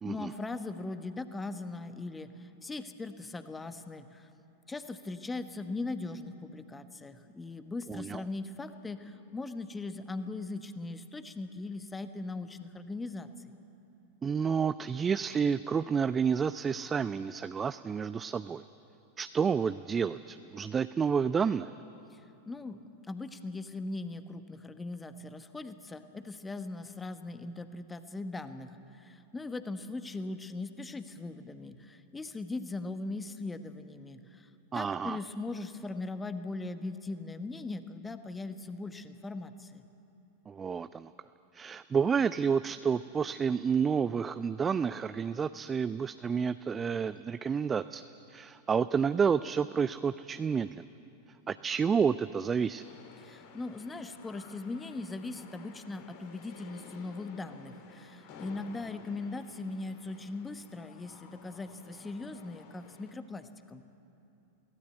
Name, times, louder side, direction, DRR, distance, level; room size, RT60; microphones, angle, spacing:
voice 1, 0.0-4.3 4.7-13.5 22.1-22.8 23.1-39.8 53.2-63.8, left 3 dB, 10° left, 10 dB, 1.2 m, -40 dB
voice 2, 7.9-8.2 14.2-18.6 19.2-21.7 34.7-35.2 40.5-41.1 41.5-48.0 48.3-50.9 51.5-52.8, right 6 dB, 20° right, 13 dB, 0.4 m, -30 dB
sound 1, 52.8-63.1, left 5 dB, 50° left, 2.5 m, -53 dB
24.5 x 17.0 x 8.0 m, 2.8 s
figure-of-eight pair, 90°, 0 cm